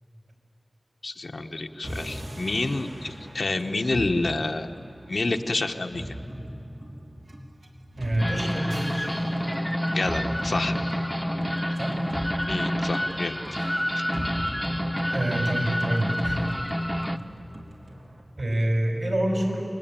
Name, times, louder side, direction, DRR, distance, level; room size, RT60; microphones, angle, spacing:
voice 1, 1.0-4.7 5.1-6.1 9.9-10.8 12.5-13.4, left 2 dB, 75° left, 4 dB, 1.2 m, -28 dB
sound 1, 1.8-18.2, equal, 85° right, 3.3 m, -40 dB
voice 2, 8.0-9.1 11.7-12.0 15.1-16.4 18.4-19.7, right 1 dB, 60° right, 2 dB, 5.6 m, -27 dB
sound 2, 8.2-17.2, equal, ahead, 0.9 m, -28 dB
28.5 x 21.0 x 9.1 m, 2.8 s
wide cardioid pair, 70°, 0 cm